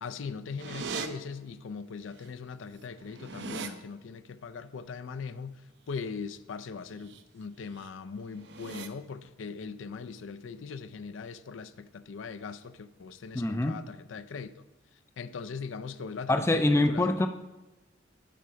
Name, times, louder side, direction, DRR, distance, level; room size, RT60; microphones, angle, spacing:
voice 1, 0.0-14.5 15.2-17.1, left 5 dB, 75° left, 0.4 m, -40 dB
sound 1, 0.6-1.1 2.3-2.4 2.6-3.7 6.9-7.2 7.6-7.9 8.3-8.9, right 5 dB, 60° right, 0.6 m, -39 dB
voice 2, 13.3-13.8 16.3-17.3, left 2 dB, 15° left, 0.3 m, -24 dB
9.2 x 5.2 x 5.6 m
head